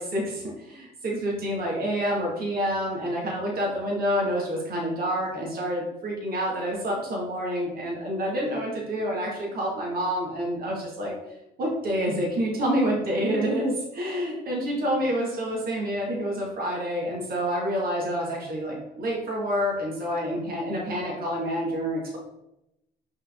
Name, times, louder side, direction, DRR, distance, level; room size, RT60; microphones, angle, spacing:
voice 1, 0.0-11.1 11.6-22.2, equal, 60° right, -3 dB, 2.1 m, -28 dB
5.9 x 4.4 x 3.7 m, 0.89 s
cardioid pair, 110°, 17 cm